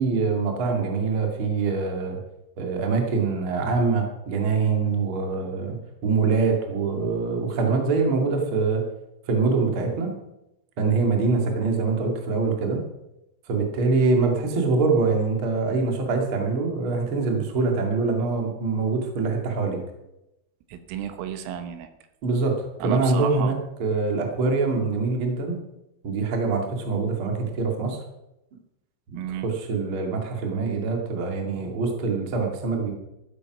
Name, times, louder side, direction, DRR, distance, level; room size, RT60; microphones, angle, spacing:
voice 1, 0.0-2.2 2.6-5.8 6.0-8.8 9.3-10.1 10.8-12.8 13.5-19.8 22.2-23.5 23.8-25.6 26.0-28.0 29.3-32.9, right 4 dB, 40° right, 2 dB, 1.9 m, -24 dB
voice 2, 20.7-21.9 22.8-23.6 29.1-29.5, right 9 dB, 80° right, 9 dB, 3.6 m, -32 dB
14.0 x 9.6 x 6.2 m, 0.90 s
omnidirectional pair, 5.8 m